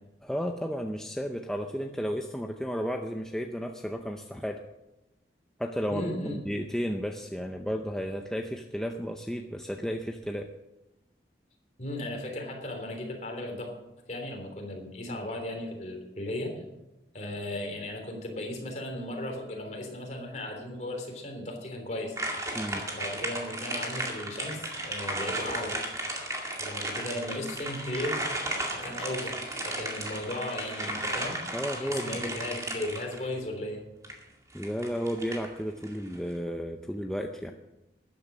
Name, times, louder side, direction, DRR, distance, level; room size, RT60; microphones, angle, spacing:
voice 1, 0.2-4.6 5.6-10.5 15.1-15.2 22.5-22.8 31.5-32.2 34.5-37.5, equal, 5° left, 3 dB, 0.6 m, -33 dB
voice 2, 5.9-6.4 11.8-13.7 14.1-16.6 17.1-22.2 22.9-25.8 26.6-28.2 28.7-33.8, left 1 dB, 40° left, 1 dB, 3.4 m, -36 dB
sound 1, 22.2-33.3 34.0-34.1 34.6-35.9 36.1-36.2, right 1 dB, 20° right, 2.2 m, -34 dB
13.5 x 10.0 x 6.1 m, 0.94 s
head